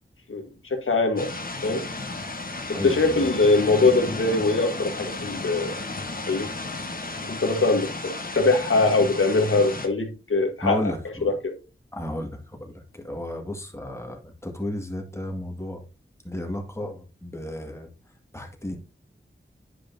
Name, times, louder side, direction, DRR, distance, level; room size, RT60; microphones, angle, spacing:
voice 1, 0.3-1.3 1.6-1.8 2.7-5.8 6.3-6.5 7.2-10.9 11.2-11.5, left 3 dB, 80° left, 1.5 m, -22 dB
sound 1, 1.2-9.9, left 3 dB, 45° left, 1.2 m, -34 dB
voice 2, 2.7-3.3 10.6-11.3 11.9-15.8 16.2-17.9 18.3-18.8, left 1 dB, 15° left, 1.9 m, -33 dB
9.8 x 5.3 x 2.7 m
wide cardioid pair, 50°, 21 cm